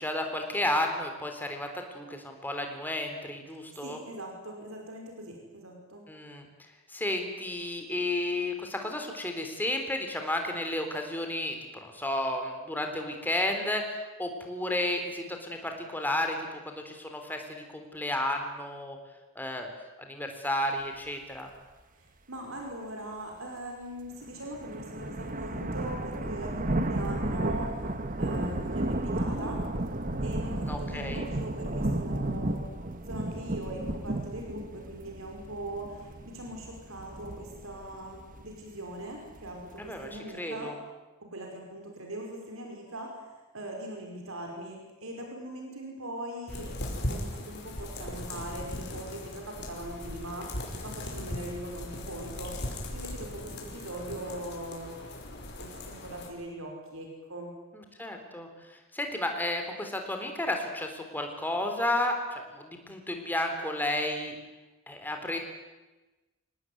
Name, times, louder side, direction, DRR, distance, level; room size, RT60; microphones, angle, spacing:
voice 1, 0.0-4.0 6.1-6.5 6.9-19.0 19.4-19.7 20.0-21.5 30.7-31.2 39.8-40.7 57.7-64.3 64.9-65.4, left 1 dB, 10° left, 4 dB, 3.8 m, -32 dB
voice 2, 3.8-6.1 22.0-27.8 28.2-29.7 30.2-32.7 33.1-40.8 41.2-43.2 43.5-46.7 47.1-50.5 50.8-52.6 52.9-55.0 55.6-57.5, right 1 dB, 80° right, 1 dB, 5.4 m, -41 dB
sound 1, 24.2-40.2, right 1 dB, 40° right, 1.6 m, -33 dB
sound 2, 46.5-56.3, left 1 dB, 55° left, 5.4 m, -38 dB
25.5 x 19.0 x 9.4 m, 1.1 s
head